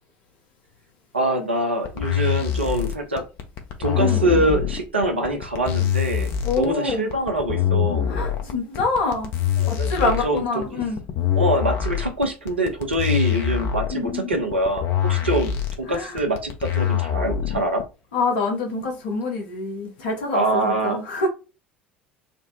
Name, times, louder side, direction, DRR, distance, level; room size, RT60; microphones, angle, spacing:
voice 1, 1.1-3.2 3.8-8.1 9.6-10.6 11.4-17.8 20.3-21.0, right 1 dB, 85° right, 0.6 m, -24 dB
sound 1, 1.8-17.8, left 10 dB, 50° left, 0.7 m, -24 dB
voice 2, 6.4-7.1 8.1-9.3 9.7-11.0 13.9-14.3 15.9-16.2 18.1-21.3, left 3 dB, 65° left, 1.0 m, -26 dB
3.3 x 2.0 x 2.7 m
figure-of-eight pair, 70°, 6 cm